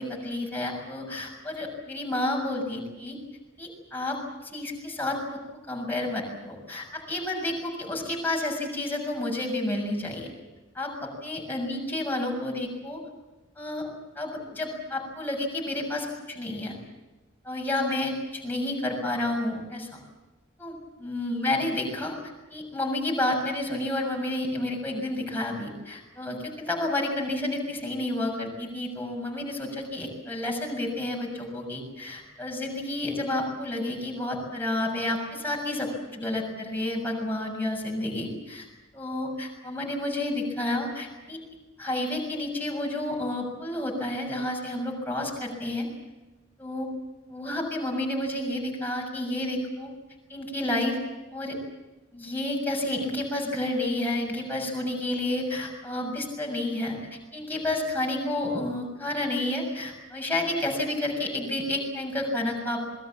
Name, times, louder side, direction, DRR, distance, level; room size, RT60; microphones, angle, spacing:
voice 1, 0.0-3.2 3.6-5.2 5.5-10.3 10.7-13.0 13.5-16.8 17.4-20.0 20.6-22.1 22.5-38.7 38.9-41.4 41.8-45.9 46.6-46.9 47.3-49.9 50.3-51.0 51.3-51.6 52.1-62.9, left 1 dB, 10° left, -1 dB, 6.8 m, -30 dB
27.5 x 21.5 x 7.4 m, 1.2 s
head